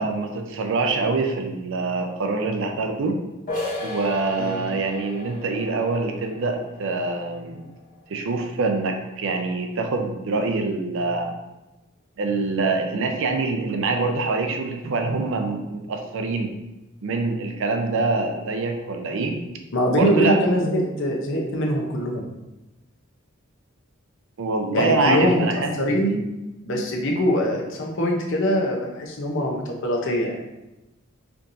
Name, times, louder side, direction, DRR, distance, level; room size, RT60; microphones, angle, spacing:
voice 1, 0.0-3.2 3.8-7.7 8.1-11.3 12.2-16.5 17.0-19.4 19.9-20.4 24.4-26.2, right 3 dB, 65° right, 5 dB, 0.5 m, -25 dB
sound 1, 3.5-9.0, left 2 dB, 40° left, 1.0 m, -36 dB
voice 2, 19.7-22.2 24.7-26.2 26.6-30.4, equal, 65° left, 0 dB, 0.7 m, -23 dB
4.5 x 2.6 x 2.6 m, 0.98 s
head